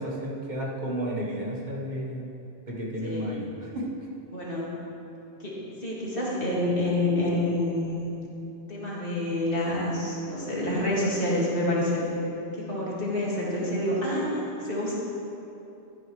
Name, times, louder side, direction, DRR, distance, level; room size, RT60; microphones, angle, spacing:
voice 1, 0.0-2.3 2.7-3.9, equal, 45° right, -4 dB, 1.5 m, -32 dB
voice 2, 3.0-3.4 4.3-4.8 5.4-5.5 5.8-8.1 8.7-12.0 12.5-15.0, left 1 dB, 60° left, -6 dB, 2.4 m, -28 dB
13.0 x 10.5 x 3.2 m, 2.9 s
omnidirectional pair, 1.0 m